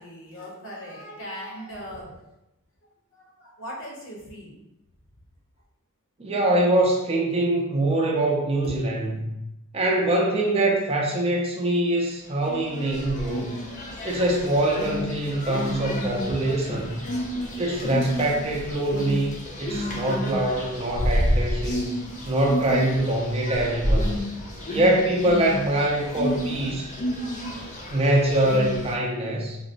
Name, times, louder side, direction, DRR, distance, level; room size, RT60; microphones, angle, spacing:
voice 1, 0.0-2.3 3.1-4.6 8.6-8.8 13.3-13.8 16.3-16.4 17.2-17.8 24.6-24.8, equal, 65° left, -3 dB, 0.9 m, -40 dB
voice 2, 6.2-9.3 9.7-13.5 14.0-17.0 17.6-22.0 22.3-24.1 24.7-26.9 27.9-29.6, right 1 dB, 30° right, -1 dB, 0.5 m, -24 dB
sound 1, 12.4-28.9, equal, 35° left, 0.5 m, -30 dB
3.8 x 2.0 x 2.5 m, 0.90 s
head